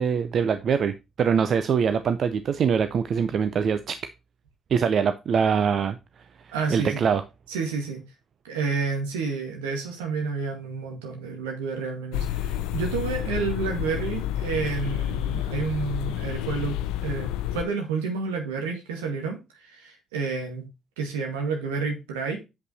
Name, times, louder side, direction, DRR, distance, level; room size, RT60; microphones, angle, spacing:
voice 1, 0.0-4.0 4.7-6.0 6.7-7.2, right 7 dB, 55° right, 0.6 m, -23 dB
voice 2, 6.5-7.0 7.5-8.0 8.4-20.7 21.0-22.4, right 5 dB, 85° right, 2.0 m, -30 dB
sound 1, 12.1-17.6, left 12 dB, 80° left, 0.5 m, -29 dB
8.2 x 5.4 x 4.1 m
hypercardioid pair, 50°, 0 cm